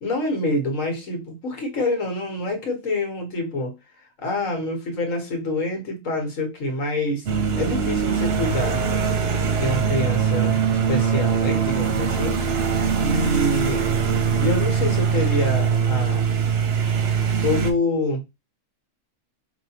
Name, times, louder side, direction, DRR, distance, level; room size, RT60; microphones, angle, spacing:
voice 1, 0.0-3.7 4.2-7.2 7.6-8.8 9.5-12.7 13.0-13.9 14.4-16.2 17.4-18.2, left 2 dB, 70° left, 1.6 m, -26 dB
sound 1, 7.3-17.7, right 6 dB, 55° right, 0.9 m, -22 dB
4.9 x 2.8 x 2.8 m
omnidirectional pair, 1.4 m